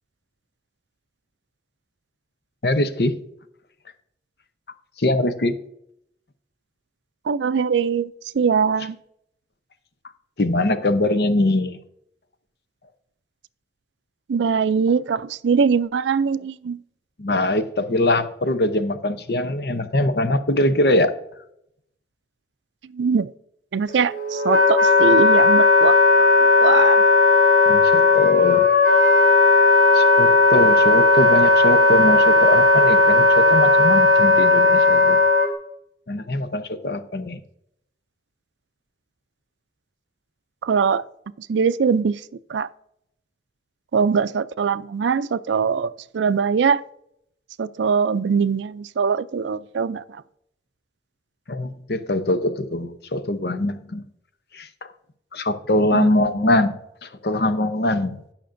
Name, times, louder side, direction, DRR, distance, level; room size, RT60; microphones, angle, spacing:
voice 1, 2.6-3.2 5.0-5.6 10.4-11.8 17.2-21.1 27.7-28.7 29.9-35.2 36.1-37.4 51.5-54.0 54.5-54.7 55.3-58.2, left 1 dB, 60° left, 0.7 m, -22 dB
voice 2, 7.3-8.1 8.4-9.0 14.3-16.8 22.9-23.3 23.7-26.0 26.6-27.0 40.6-41.0 41.5-42.1 42.5-42.7 43.9-46.8 47.6-50.0 55.9-56.1, right 6 dB, 85° right, 0.4 m, -21 dB
Wind instrument woodwind instrument, 23.9-35.5, left 3 dB, 45° left, 1.8 m, -15 dB
17.0 x 5.9 x 2.6 m
head